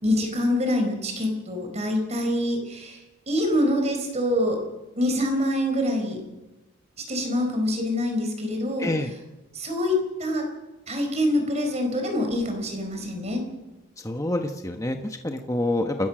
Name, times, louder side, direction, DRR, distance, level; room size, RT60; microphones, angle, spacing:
voice 1, 0.0-4.6 5.0-6.2 7.1-8.9 9.5-10.4 10.9-13.4, left 1 dB, 30° right, 4 dB, 4.6 m, -25 dB
voice 2, 8.8-9.1 14.0-16.1, left 1 dB, 15° left, 5 dB, 1.2 m, -27 dB
29.0 x 14.5 x 6.2 m, 1.1 s
head